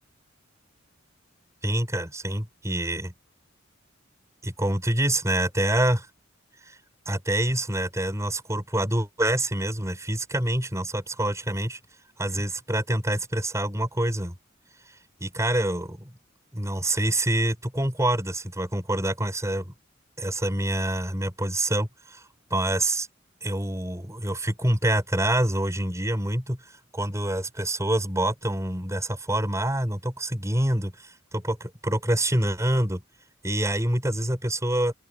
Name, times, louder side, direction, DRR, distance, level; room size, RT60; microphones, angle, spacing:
voice 1, 1.6-3.1 4.4-6.1 6.6-6.8 7.1-11.8 12.2-14.4 15.2-16.1 16.5-19.7 20.2-23.1 23.4-26.6 26.9-33.0 33.4-34.9, right 1 dB, 15° right, 6.7 m, -26 dB
open air
head